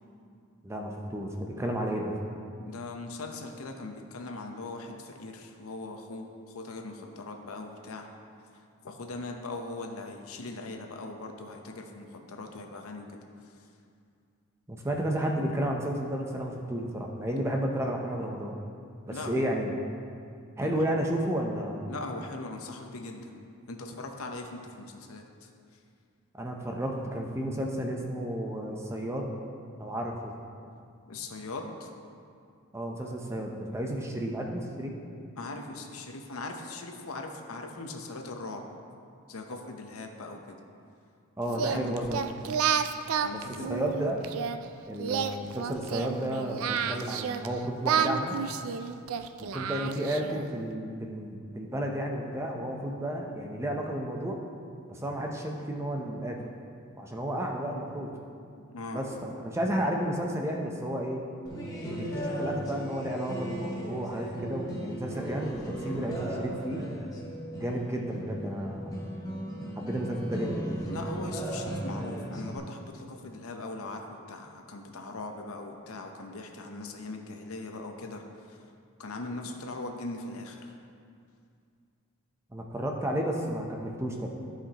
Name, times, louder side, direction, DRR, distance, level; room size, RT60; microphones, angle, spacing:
voice 1, 0.6-2.1 14.7-18.5 19.1-19.7 20.6-21.9 26.3-29.3 29.8-30.3 32.7-34.9 41.4-42.2 43.3-43.4 43.7-44.2 44.9-48.3 49.4-54.4 54.9-56.4 57.0-58.1 58.9-61.2 62.0-66.9 67.6-69.0 69.8-70.5 82.5-84.3, right 1 dB, 10° right, 0 dB, 0.6 m, -32 dB
voice 2, 2.6-8.1 8.8-13.2 19.1-19.5 20.6-20.8 21.9-23.4 23.7-25.5 31.1-31.9 35.4-38.7 39.3-40.6 41.5-42.4 43.2-43.7 58.6-59.0 65.1-65.3 70.8-78.2 79.0-80.6, left 2 dB, 75° left, 3 dB, 0.8 m, -40 dB
Singing, 41.5-44.6 45.0-47.5 47.8-50.4, right 7 dB, 70° right, 0.3 m, -30 dB
sound 1, 61.5-72.6, right 1 dB, 15° left, 0.9 m, -36 dB
14.0 x 5.0 x 2.9 m, 2.4 s
head